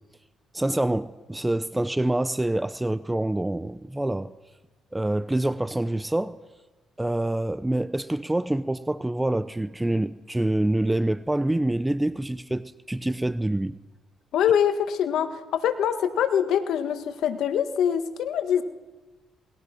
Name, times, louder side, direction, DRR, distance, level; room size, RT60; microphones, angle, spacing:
voice 1, 0.5-4.3 4.9-6.4 7.0-13.7, right 1 dB, 10° right, 0.7 m, -26 dB
voice 2, 14.3-18.6, left 9 dB, 80° left, 1.8 m, -24 dB
27.0 x 21.0 x 6.1 m
cardioid pair, 90°, 0 cm